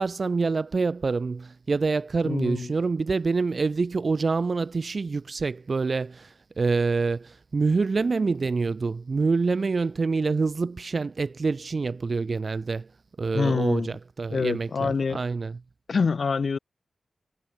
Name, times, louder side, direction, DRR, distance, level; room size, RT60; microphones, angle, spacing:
voice 1, 0.0-6.3 6.6-12.9 13.2-15.6, right 4 dB, 55° right, 3.8 m, -26 dB
voice 2, 2.2-2.7 13.3-13.9 14.3-15.2 15.9-16.6, left 5 dB, 65° left, 1.3 m, -26 dB
cardioid pair, 60°, 0 cm